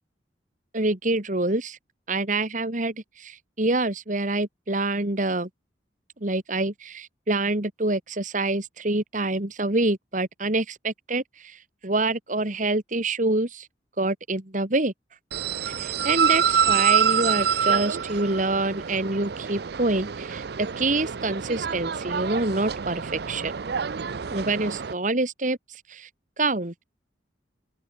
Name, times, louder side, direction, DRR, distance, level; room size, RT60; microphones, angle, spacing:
voice 1, 0.7-1.8 2.1-5.5 6.2-13.7 14.0-14.9 15.8-23.5 24.3-26.1 26.4-26.7, right 2 dB, 45° right, 2.1 m, -26 dB
sound 1, 15.3-24.9, right 7 dB, 60° right, 0.5 m, -26 dB
open air
head